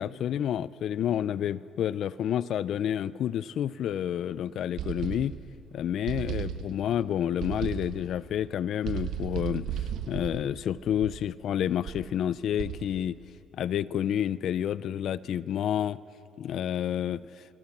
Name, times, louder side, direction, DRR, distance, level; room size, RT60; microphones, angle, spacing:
voice 1, 0.0-5.4 5.7-9.7 10.1-13.2 13.5-16.0 16.4-17.2, left 10 dB, 55° left, 18 dB, 0.4 m, -29 dB
sound 1, 4.8-5.6 6.1-7.0 7.4-8.2 8.8-11.4 11.8-12.2 12.6-13.1, right 9 dB, 70° right, 1.2 m, -35 dB
24.0 x 22.5 x 7.2 m, 3.0 s
cardioid pair, 165°, 0 cm